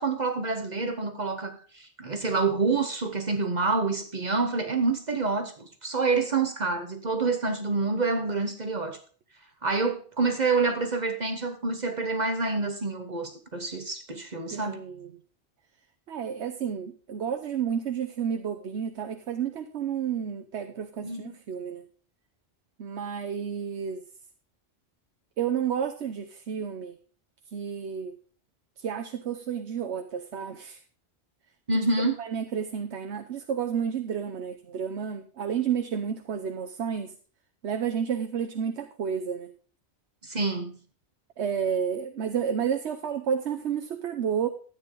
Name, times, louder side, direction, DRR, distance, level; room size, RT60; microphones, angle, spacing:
voice 1, 0.0-9.0 9.6-14.8 21.0-21.3 31.7-32.1 40.2-40.8, right 3 dB, 40° right, 1.2 m, -27 dB
voice 2, 14.5-15.1 16.1-21.8 22.8-24.0 25.4-27.0 27.5-28.2 28.8-30.8 31.7-37.1 37.6-39.5 41.4-44.5, right 8 dB, 80° right, 1.1 m, -31 dB
13.0 x 9.1 x 3.8 m
omnidirectional pair, 1.1 m